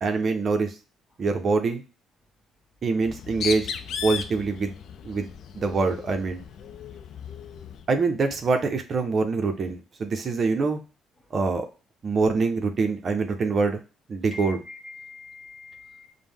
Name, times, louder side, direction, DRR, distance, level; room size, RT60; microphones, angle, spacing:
voice 1, 0.0-0.7 1.2-1.8 2.8-3.7 4.0-4.7 5.0-6.4 7.9-10.8 11.3-11.7 12.0-13.8 14.1-14.6, right 4 dB, 45° right, 6 dB, 0.6 m, -25 dB
Bird, 3.0-7.9, left 7 dB, 65° left, 0.4 m, -36 dB
voice 2, 14.3-16.1, left 3 dB, 20° left, 0 dB, 1.2 m, -43 dB
5.0 x 2.1 x 3.6 m, 0.33 s
cardioid pair, 100°, 0 cm